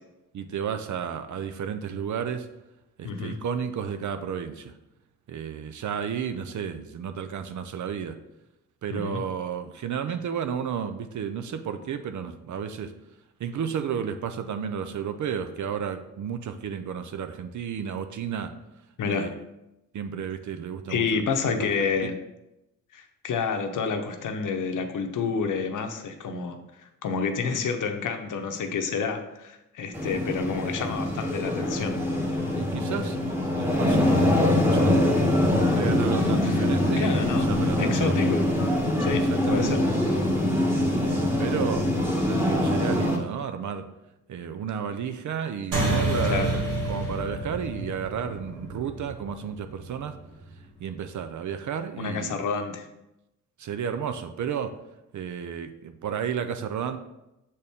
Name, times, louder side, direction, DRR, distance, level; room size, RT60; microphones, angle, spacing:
voice 1, 0.3-2.5 3.0-4.7 5.3-8.2 8.8-12.9 13.4-18.5 19.0-19.3 19.9-21.2 21.8-21.9 32.6-33.2 33.5-35.2 35.7-38.2 39.1-39.9 40.7-41.9 42.3-43.9 44.3-50.1 50.8-52.4 53.6-54.7 55.1-57.0, right 7 dB, 65° right, 9 dB, 0.6 m, -32 dB
voice 2, 8.9-9.2 19.0-19.3 20.9-22.2 22.9-32.0 36.4-36.6 36.9-38.4 39.0-39.8 46.2-46.5 52.0-52.9, left 5 dB, 70° left, 6 dB, 0.9 m, -29 dB
sound 1, 29.9-43.2, left 1 dB, 5° right, 1.3 m, -24 dB
sound 2, 45.7-50.5, right 2 dB, 80° right, 1.9 m, -29 dB
6.7 x 4.3 x 3.6 m, 0.91 s
cardioid pair, 85°, 32 cm